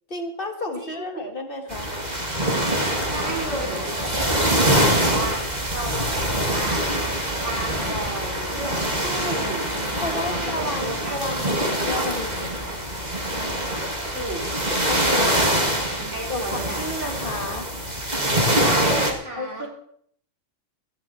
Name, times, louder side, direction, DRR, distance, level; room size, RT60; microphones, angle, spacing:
voice 1, 0.1-1.9 9.0-9.5 10.0-12.5 14.9-15.4 16.3-17.7 19.4-19.7, left 2 dB, 40° left, 4 dB, 2.3 m, -31 dB
voice 2, 0.8-1.3 3.1-5.4 5.7-6.8 7.4-11.3 14.1-14.5 15.0-15.3 16.0-16.8 18.6-19.7, right 2 dB, 55° right, -1 dB, 4.0 m, -33 dB
sound 1, 1.7-19.1, right 1 dB, 30° right, 2.6 m, -24 dB
15.5 x 15.0 x 4.5 m, 0.66 s
omnidirectional pair, 1.5 m